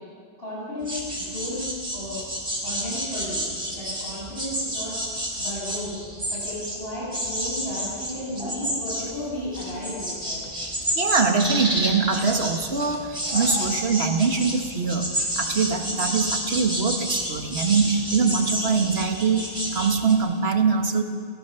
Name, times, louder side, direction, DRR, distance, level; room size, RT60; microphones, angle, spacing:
voice 1, 0.4-1.7 1.9-2.2 2.6-5.0 5.4-6.0 6.3-10.4, left 1 dB, 75° left, -7 dB, 8.2 m, -34 dB
sound 1, 0.8-6.8 7.1-20.1, equal, 30° right, 5.0 m, -29 dB
voice 2, 11.0-21.0, right 5 dB, 85° right, 5 dB, 1.9 m, -23 dB
30.0 x 17.5 x 7.0 m, 2.2 s
omnidirectional pair, 1.0 m